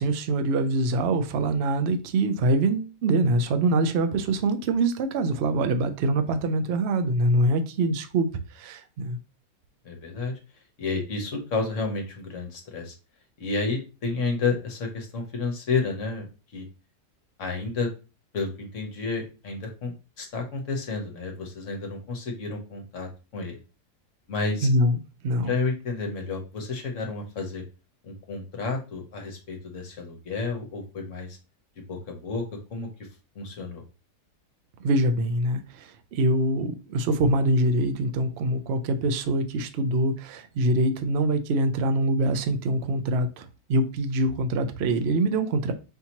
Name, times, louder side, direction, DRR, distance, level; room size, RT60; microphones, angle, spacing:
voice 1, 0.0-9.2 24.6-25.6 34.8-45.7, right 1 dB, 75° right, 9 dB, 0.6 m, -24 dB
voice 2, 9.8-10.3 10.8-12.9 13.4-16.3 16.5-16.6 17.4-17.9 18.3-23.6 24.3-24.7 25.4-27.6 28.0-31.4 31.9-32.4 32.7-32.9 33.3-33.8, left 3 dB, 55° left, 3 dB, 1.2 m, -31 dB
5.6 x 2.8 x 2.9 m, 0.31 s
omnidirectional pair, 1.7 m